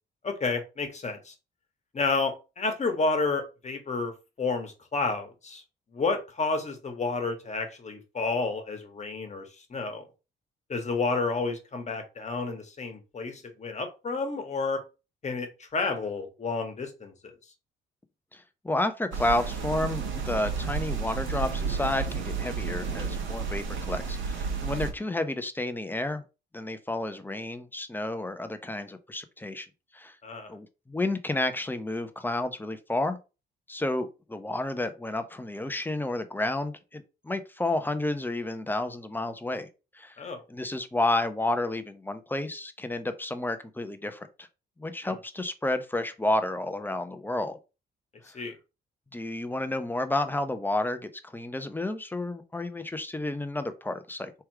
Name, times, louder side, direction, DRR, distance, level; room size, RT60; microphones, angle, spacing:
voice 1, 0.2-1.3 1.9-5.6 5.9-10.0 10.7-14.8 15.2-17.3 30.2-30.5 40.2-40.4 45.0-45.2 48.3-48.6, left 3 dB, 35° left, 1.4 m, -30 dB
voice 2, 18.3-26.2 26.5-29.7 29.9-30.2 30.5-33.2 33.7-39.7 39.9-40.2 40.5-44.5 44.8-47.6 49.1-54.3, left 2 dB, 10° left, 0.7 m, -31 dB
sound 1, 19.1-24.9, right 5 dB, 75° right, 1.4 m, -31 dB
3.4 x 3.1 x 4.7 m
cardioid pair, 90°, 20 cm